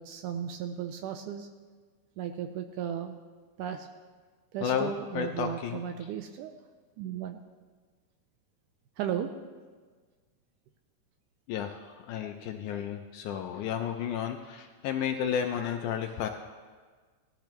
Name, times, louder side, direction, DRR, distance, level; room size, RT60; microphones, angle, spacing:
voice 1, 0.0-1.5 2.2-3.2 3.6-3.9 4.5-6.6 7.0-7.4 9.0-9.3, right 9 dB, 80° right, 7 dB, 1.9 m, -35 dB
voice 2, 4.6-5.8 11.5-16.3, left 8 dB, 80° left, 5 dB, 1.8 m, -32 dB
18.5 x 12.0 x 3.0 m, 1.5 s
omnidirectional pair, 4.0 m